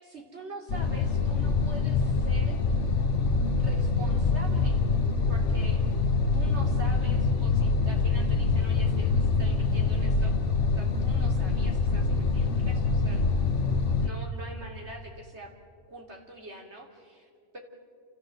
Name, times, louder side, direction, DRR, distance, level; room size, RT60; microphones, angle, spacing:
voice 1, 0.0-2.6 3.6-4.8 5.3-5.8 6.3-10.4 10.7-13.2 14.0-15.5 15.9-17.6, right 1 dB, 65° right, 0 dB, 3.4 m, -44 dB
sound 1, 0.7-14.1, left 4 dB, 75° left, 1.4 m, -25 dB
29.5 x 15.0 x 7.8 m, 2.2 s
omnidirectional pair, 1.2 m